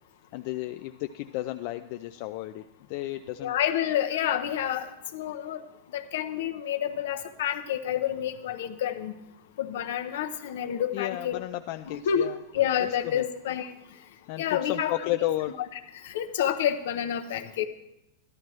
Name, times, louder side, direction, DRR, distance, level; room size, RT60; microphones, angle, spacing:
voice 1, 0.3-3.6 10.9-12.4 13.1-13.2 14.3-15.6, left 15 dB, 60° left, 7 dB, 0.4 m, -33 dB
voice 2, 3.4-5.6 5.9-9.1 9.6-11.4 11.9-12.3 12.5-13.7 14.4-15.2 16.0-17.7, left 10 dB, 75° left, 8 dB, 0.8 m, -29 dB
13.0 x 12.0 x 3.2 m, 0.86 s
hypercardioid pair, 120°, 0 cm